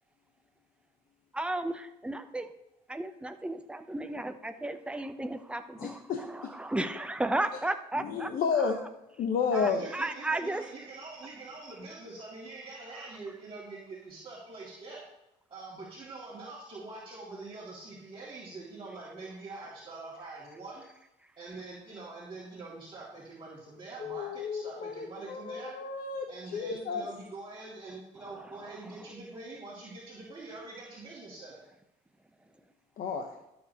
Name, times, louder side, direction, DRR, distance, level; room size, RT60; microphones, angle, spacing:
voice 1, 1.3-2.5 2.9-8.3 8.6-8.7 9.5-10.6 28.2-28.8, right 2 dB, 5° right, 8 dB, 0.6 m, -34 dB
voice 2, 5.8-6.5 8.0-8.8 9.2-9.9 24.0-27.0 33.0-33.3, left 5 dB, 60° left, 4 dB, 0.9 m, -32 dB
voice 3, 9.5-15.0 15.5-20.9 21.4-25.8 26.3-31.7, right 3 dB, 30° right, -7 dB, 2.2 m, -44 dB
12.0 x 6.9 x 2.8 m, 0.89 s
cardioid pair, 110°, 17 cm